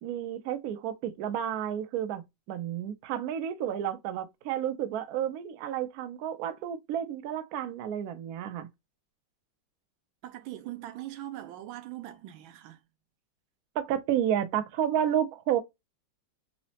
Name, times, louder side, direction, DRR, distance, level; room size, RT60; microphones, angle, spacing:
voice 1, 0.0-8.7 13.8-15.6, right 10 dB, 75° right, 0.8 m, -31 dB
voice 2, 10.2-12.8, right 14 dB, 90° right, 1.4 m, -41 dB
3.9 x 2.1 x 2.6 m
omnidirectional pair, 2.1 m